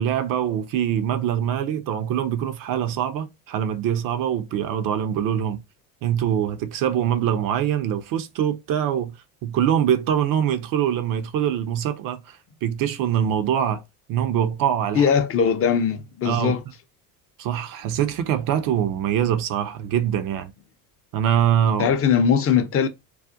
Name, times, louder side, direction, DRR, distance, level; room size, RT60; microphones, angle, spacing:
voice 1, 0.0-5.6 6.0-9.2 9.4-13.8 14.1-15.1 16.2-16.6 17.4-20.5 21.1-21.9, right 9 dB, 50° right, 0.5 m, -23 dB
voice 2, 14.9-16.6 21.8-22.9, left 7 dB, 30° left, 0.5 m, -20 dB
2.4 x 2.1 x 2.6 m
supercardioid pair, 80°, 45 cm